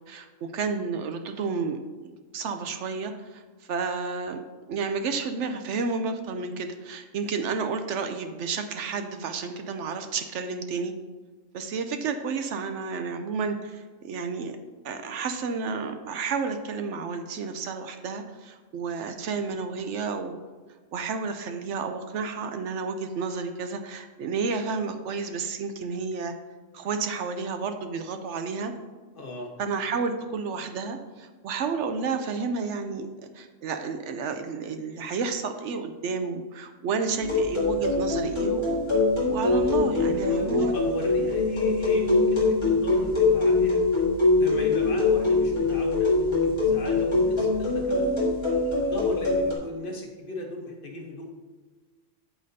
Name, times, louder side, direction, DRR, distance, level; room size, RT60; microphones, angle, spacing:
voice 1, 0.1-3.4 3.7-4.4 4.7-10.9 11.5-14.6 14.8-20.3 20.9-26.3 26.7-28.7 29.6-33.1 33.3-38.8 39.3-40.7, right 4 dB, 70° right, 7 dB, 0.9 m, -31 dB
voice 2, 29.1-29.5 39.8-43.8 44.3-48.3 48.8-51.2, left 2 dB, 45° left, 1 dB, 1.1 m, -36 dB
sound 1, 37.2-49.5, left 3 dB, 20° left, 1.7 m, -23 dB
8.3 x 7.5 x 2.7 m, 1.4 s
omnidirectional pair, 1.3 m